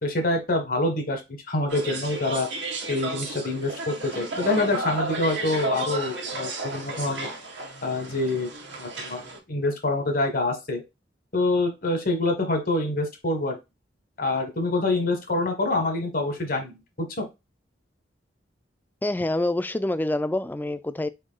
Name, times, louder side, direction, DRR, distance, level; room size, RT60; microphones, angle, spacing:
voice 1, 0.0-1.2 1.5-2.5 2.9-7.3 7.8-8.5 8.8-9.2 9.5-10.8 11.3-13.6 14.2-17.3, left 2 dB, 55° left, 1.5 m, -26 dB
sound 1, 1.7-9.4, right 3 dB, 75° right, 1.5 m, -33 dB
voice 2, 19.0-21.1, left 1 dB, 10° left, 0.3 m, -26 dB
4.6 x 4.5 x 2.2 m
head